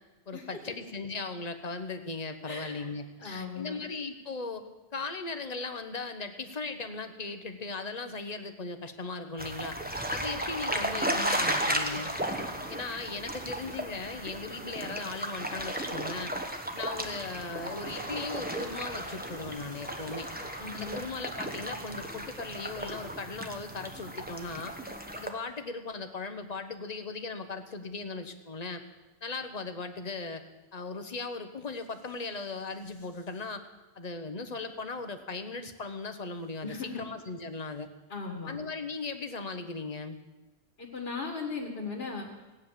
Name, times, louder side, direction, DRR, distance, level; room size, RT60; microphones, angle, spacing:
voice 1, 0.3-4.6 4.9-9.8 10.1-12.1 12.7-16.3 16.7-20.3 20.7-24.7 25.2-28.8 29.2-30.4 30.7-33.6 34.0-37.9 38.5-40.2, left 3 dB, 40° left, 8 dB, 1.1 m, -38 dB
voice 2, 2.5-2.9 3.2-3.8 20.6-21.0 36.6-37.0 38.1-38.5 40.8-42.3, left 4 dB, 60° left, -2 dB, 2.2 m, -37 dB
sound 1, 9.4-25.3, right 1 dB, 10° right, 1.2 m, -35 dB
sound 2, 16.9-24.4, right 1 dB, 55° right, 5.5 m, -50 dB
16.5 x 9.5 x 7.4 m, 1.1 s
omnidirectional pair, 1.2 m